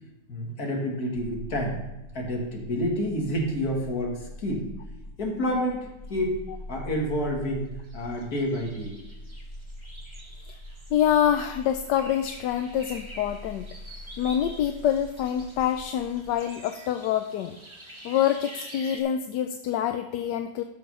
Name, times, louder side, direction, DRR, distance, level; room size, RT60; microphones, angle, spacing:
voice 1, 0.3-1.8 2.1-4.7 5.2-6.4 6.7-9.0, equal, 60° left, 0 dB, 2.5 m, -29 dB
sound 1, 1.2-16.3, left 1 dB, 35° left, 1.5 m, -44 dB
sound 2, 7.8-19.0, right 1 dB, 15° right, 1.4 m, -47 dB
voice 2, 10.9-13.6 14.2-17.5 18.0-20.6, left 10 dB, 80° left, 7 dB, 1.2 m, -26 dB
12.5 x 5.7 x 5.5 m, 1.0 s
omnidirectional pair, 1.9 m